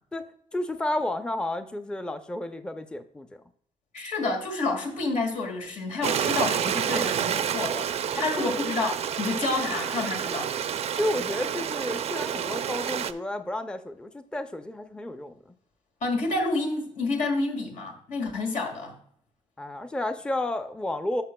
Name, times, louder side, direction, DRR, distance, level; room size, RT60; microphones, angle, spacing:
voice 1, 0.1-3.3 8.2-8.6 11.0-15.5 19.6-21.2, left 1 dB, 5° left, 8 dB, 0.5 m, -31 dB
voice 2, 3.9-7.9 8.1-10.5 16.0-19.0, left 3 dB, 85° left, 3 dB, 1.9 m, -29 dB
Stream, 6.0-13.1, right 8 dB, 60° right, 0.4 m, -29 dB
12.5 x 5.9 x 2.2 m, 0.64 s
cardioid pair, 120°, 12 cm